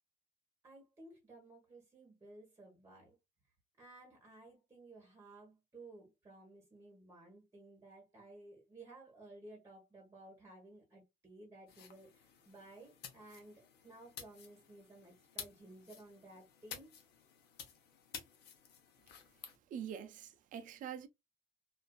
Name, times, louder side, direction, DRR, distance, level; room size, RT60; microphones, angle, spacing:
voice 1, 0.6-3.2 3.8-16.9, right 2 dB, 15° right, 1.1 m, -56 dB
sound 1, 11.7-19.6, left 7 dB, 75° left, 0.8 m, -53 dB
voice 2, 19.7-21.1, right 8 dB, 50° right, 0.4 m, -44 dB
2.5 x 2.4 x 2.3 m
cardioid pair, 110°, 17 cm